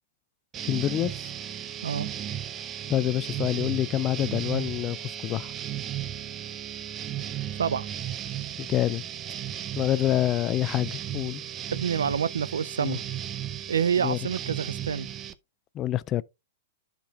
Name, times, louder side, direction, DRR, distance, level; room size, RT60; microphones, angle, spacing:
sound 1, 0.5-15.3, right 11 dB, 30° right, 0.5 m, -35 dB
voice 1, 0.7-1.1 2.9-5.5 8.7-9.0 9.8-11.4 12.8-13.0 14.0-14.2 15.8-16.2, left 13 dB, 30° left, 0.3 m, -26 dB
voice 2, 11.7-13.0 13.7-15.1, right 7 dB, 85° right, 0.3 m, -27 dB
11.5 x 5.2 x 2.3 m
hypercardioid pair, 120°, 0 cm